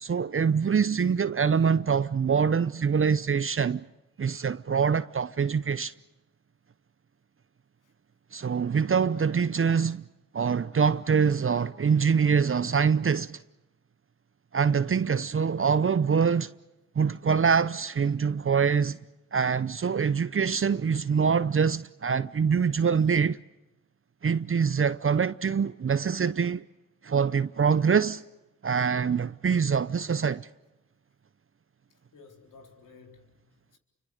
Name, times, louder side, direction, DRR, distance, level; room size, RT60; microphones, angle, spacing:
voice 1, 0.0-3.8 4.2-5.9 8.3-10.0 10.3-13.4 14.5-16.5 17.0-19.0 19.3-23.4 24.2-26.6 27.0-28.2 28.6-30.5, right 6 dB, 40° right, 0.8 m, -24 dB
voice 2, 31.9-33.8, left 4 dB, 75° left, 4.1 m, -55 dB
28.5 x 25.0 x 6.6 m
supercardioid pair, 45°, 32 cm